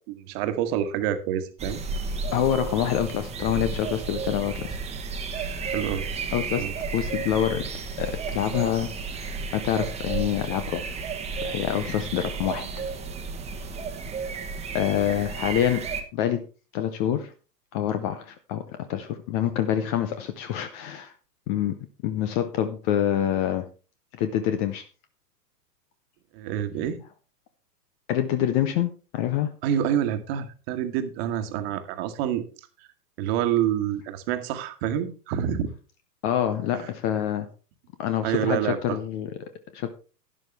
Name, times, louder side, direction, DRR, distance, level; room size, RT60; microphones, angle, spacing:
voice 1, 0.1-1.8 5.6-6.1 6.6-6.7 26.3-27.0 29.6-32.5 33.2-35.7 36.7-36.9 38.2-39.0, right 10 dB, 40° right, 9 dB, 1.6 m, -27 dB
sound 1, 1.6-16.0, right 4 dB, 15° right, 1.1 m, -33 dB
voice 2, 2.3-4.8 6.3-6.7 6.9-7.7 8.0-10.9 11.4-12.7 14.7-16.5 16.7-17.3 17.7-21.1 21.5-21.8 22.0-23.7 24.2-24.8 28.1-29.5 36.2-37.5 38.0-39.9, left 10 dB, 20° left, 10 dB, 0.5 m, -26 dB
11.5 x 10.5 x 3.5 m, 0.35 s
figure-of-eight pair, 110°, 49 cm